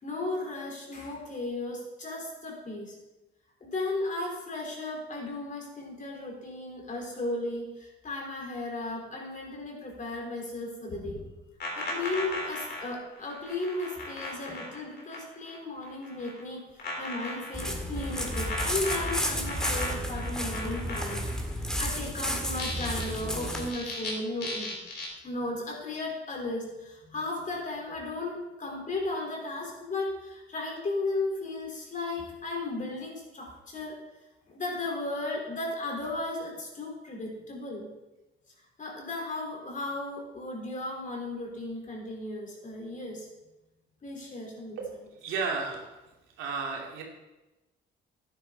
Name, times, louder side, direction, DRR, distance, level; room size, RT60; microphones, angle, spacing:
voice 1, 0.0-3.0 3.6-11.2 11.8-21.3 21.5-24.8 25.2-34.0 34.5-37.9 38.8-43.3 44.0-44.8, left 2 dB, 40° left, 0 dB, 3.9 m, -35 dB
sound 1, 10.9-15.6 15.8-16.4 16.8-21.5 22.4-24.1 24.4-25.1, left 2 dB, 55° left, 4.0 m, -37 dB
sound 2, 17.5-23.7, equal, 5° left, 2.0 m, -32 dB
voice 2, 45.2-45.9 46.4-47.0, right 4 dB, 90° right, 0 dB, 2.5 m, -32 dB
11.5 x 9.9 x 4.0 m, 1.1 s
cardioid pair, 90°, 20 cm